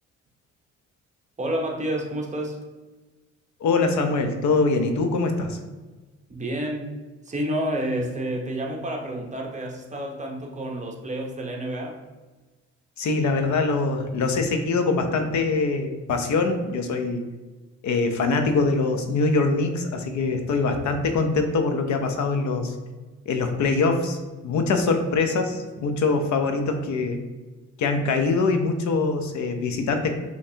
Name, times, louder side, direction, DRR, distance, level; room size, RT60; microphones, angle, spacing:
voice 1, 1.4-2.6 6.3-6.9 7.3-12.0, right 1 dB, 25° right, 0 dB, 0.9 m, -29 dB
voice 2, 3.6-5.6 13.0-17.2 17.8-22.7 23.3-24.2 24.4-27.2 27.8-30.1, left 3 dB, 70° left, 6 dB, 0.7 m, -23 dB
5.6 x 3.2 x 2.8 m, 1.2 s
cardioid pair, 90°, 30 cm